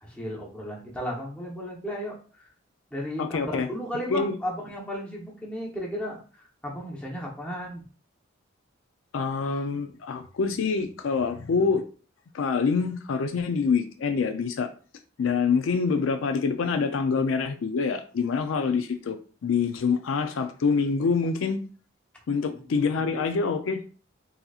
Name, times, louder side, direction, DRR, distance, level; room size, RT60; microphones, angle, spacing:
voice 1, 0.0-2.1 2.9-7.8 22.5-23.1, equal, 5° left, -4 dB, 0.8 m, -34 dB
voice 2, 3.2-3.7 4.1-4.3 9.1-11.8 12.3-14.7 15.2-19.2 19.4-21.6 22.3-23.9, left 5 dB, 85° left, 8 dB, 0.4 m, -26 dB
3.9 x 2.8 x 2.3 m, 0.39 s
head